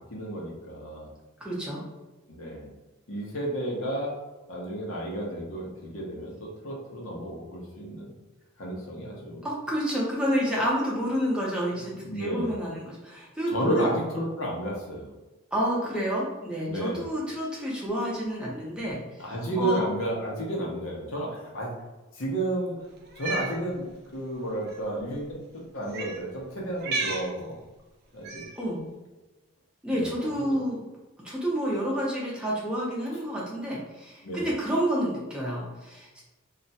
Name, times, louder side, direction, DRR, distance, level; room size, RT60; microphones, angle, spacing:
voice 1, 0.1-1.1 2.3-2.7 3.1-4.1 4.5-8.1 8.6-9.4 11.8-12.5 13.5-15.1 16.7-17.1 19.2-21.7 22.1-22.8 23.2-27.5 28.1-28.4 29.9-30.1 30.5-30.6 33.1-33.2 34.2-34.5, right 1 dB, 85° left, -2 dB, 0.8 m, -32 dB
voice 2, 1.4-1.8 9.4-13.9 15.5-19.0 19.6-19.8 28.6-28.8 29.8-30.8 31.2-36.2, equal, 5° right, -5 dB, 0.6 m, -29 dB
Cat, 23.1-23.5 24.6-24.8 25.9-26.2 26.8-27.3 28.2-28.6, right 3 dB, 50° right, 0.5 m, -32 dB
2.4 x 2.2 x 4.0 m, 1.1 s
head